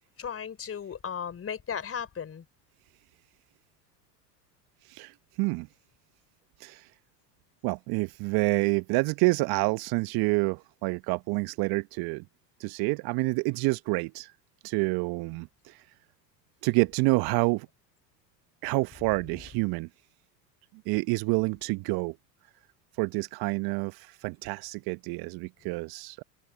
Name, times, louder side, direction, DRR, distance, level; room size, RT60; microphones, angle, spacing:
voice 1, 0.2-2.4, left 7 dB, 25° left, 4.5 m, -35 dB
voice 2, 7.6-12.2 12.6-14.3 14.6-15.8 16.6-17.7 18.6-19.9 20.9-22.2 23.0-26.2, right 26 dB, 45° right, 1.0 m, -28 dB
hypercardioid pair, 80°, 50 cm